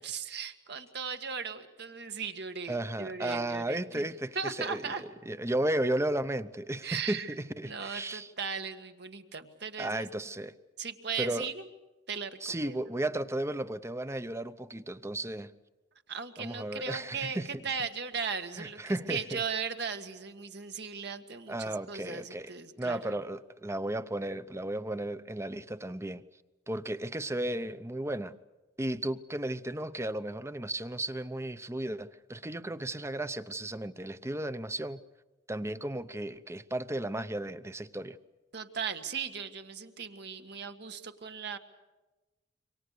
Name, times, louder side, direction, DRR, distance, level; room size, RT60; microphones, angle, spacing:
voice 1, 0.0-4.1 4.3-5.0 6.8-7.3 7.6-10.1 10.8-11.7 12.1-12.3 12.6-12.7 16.1-17.4 17.6-23.2 38.5-41.6, right 6 dB, 65° right, 1.7 m, -37 dB
voice 2, 2.7-8.3 9.8-10.5 11.2-11.5 12.4-15.5 16.4-17.8 18.6-19.4 21.5-22.5 22.8-26.2 26.7-28.3 28.8-35.0 35.5-38.2, right 1 dB, 15° right, 0.8 m, -34 dB
27.5 x 24.5 x 6.7 m
head